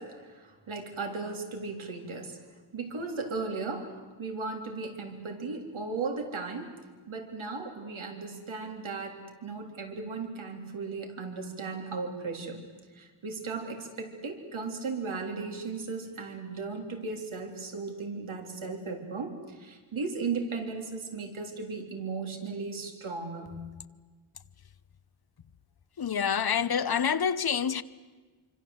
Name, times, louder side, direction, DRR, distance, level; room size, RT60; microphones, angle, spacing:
voice 1, 0.0-6.8 7.1-12.7 12.9-23.5, right 4 dB, 80° right, 3.5 m, -36 dB
voice 2, 26.0-27.8, left 7 dB, 50° left, 1.0 m, -27 dB
26.5 x 25.0 x 7.9 m
wide cardioid pair, 105°, 47 cm